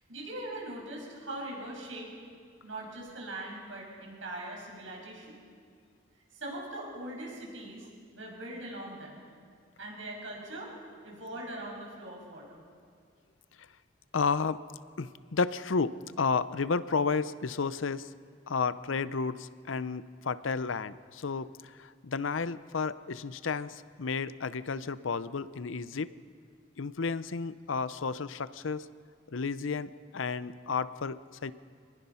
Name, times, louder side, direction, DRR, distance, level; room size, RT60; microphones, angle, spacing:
voice 1, 0.1-2.1 2.6-5.4 6.3-7.9 8.1-9.2 9.8-10.7 11.0-12.6, right 1 dB, 80° right, -2 dB, 6.8 m, -41 dB
voice 2, 14.1-14.6 15.0-18.1 18.5-26.1 26.8-28.9 29.3-31.5, left 5 dB, 80° left, 15 dB, 0.6 m, -32 dB
25.5 x 20.0 x 5.7 m, 2.1 s
head